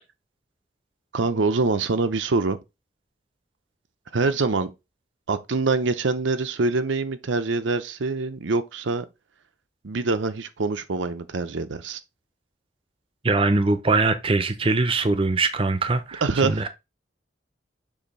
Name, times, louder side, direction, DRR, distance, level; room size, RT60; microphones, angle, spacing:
voice 1, 1.1-2.6 4.1-4.7 5.3-9.1 9.8-12.0 16.2-16.6, right 3 dB, 80° right, 0.7 m, -24 dB
voice 2, 13.2-16.7, right 3 dB, 30° right, 0.6 m, -22 dB
7.1 x 2.7 x 5.3 m
head